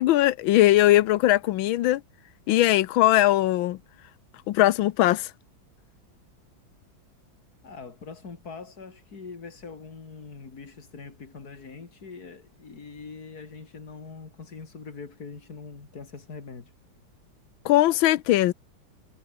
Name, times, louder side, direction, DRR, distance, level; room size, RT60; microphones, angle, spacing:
voice 1, 0.0-2.0 2.5-3.8 4.5-5.3 17.6-18.5, left 15 dB, 90° left, 1.5 m, -20 dB
voice 2, 7.6-16.7, left 4 dB, 50° left, 3.3 m, -43 dB
omnidirectional pair, 2.1 m